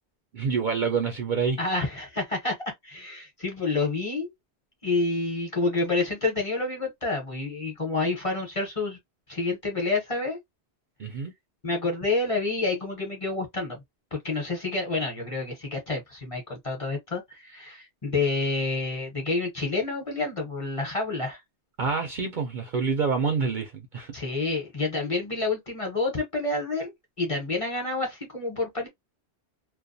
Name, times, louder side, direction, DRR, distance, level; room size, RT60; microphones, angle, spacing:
voice 1, 0.3-1.6 11.0-11.3 21.8-24.1, right 5 dB, 55° right, 0.6 m, -27 dB
voice 2, 1.6-2.5 2.8-4.3 4.8-9.0 9.3-10.4 11.6-13.8 14.1-21.4 24.1-28.9, left 3 dB, 30° left, 0.8 m, -28 dB
2.3 x 2.2 x 2.5 m
omnidirectional pair, 1.2 m